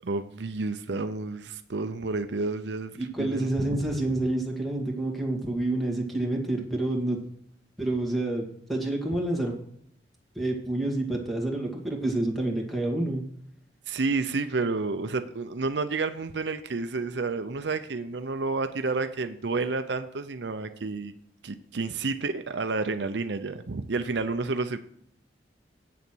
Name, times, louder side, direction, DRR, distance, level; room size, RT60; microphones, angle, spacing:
voice 1, 0.0-4.0 13.9-21.1 21.4-24.8, right 3 dB, 75° right, 0.7 m, -30 dB
voice 2, 3.0-7.2 7.8-9.5 10.4-13.2, right 2 dB, ahead, 2.2 m, -28 dB
8.6 x 6.9 x 6.2 m
head